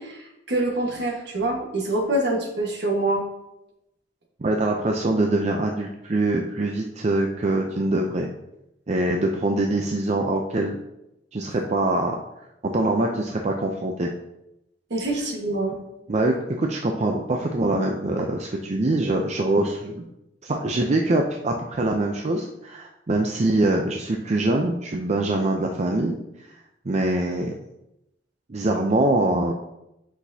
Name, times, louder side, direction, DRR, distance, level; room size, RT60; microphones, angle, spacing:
voice 1, 0.0-3.2 14.9-15.8, right 1 dB, 65° right, 1 dB, 1.5 m, -25 dB
voice 2, 4.4-8.3 8.9-10.8 11.3-12.2 12.6-14.1 16.1-20.0 20.4-26.2 26.5-26.6 26.8-27.5 28.5-29.5, right 2 dB, 40° right, 2 dB, 0.5 m, -24 dB
8.3 x 6.0 x 2.7 m, 0.88 s
head